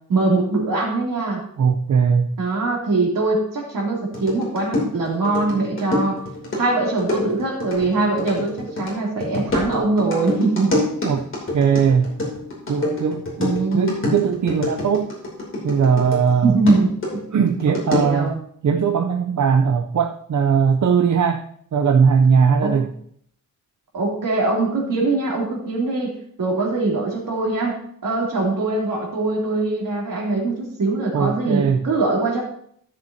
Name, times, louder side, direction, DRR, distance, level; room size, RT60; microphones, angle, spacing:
voice 1, 0.1-1.4 2.4-6.2 6.5-10.7 13.4-13.9 16.4-16.9 17.9-18.4 22.6-22.7 23.9-32.4, right 3 dB, 75° right, -2 dB, 3.0 m, -22 dB
voice 2, 1.6-2.3 11.0-11.2 11.5-12.1 12.7-13.2 13.7-15.1 15.6-16.6 17.3-18.3 18.6-21.5 21.7-22.9 31.1-31.8, right 6 dB, 60° right, 5 dB, 0.6 m, -19 dB
sound 1, 4.1-16.3 16.7-18.3, left 1 dB, 40° left, 2.8 m, -27 dB
13.0 x 6.8 x 2.8 m, 0.65 s
wide cardioid pair, 165°, 34 cm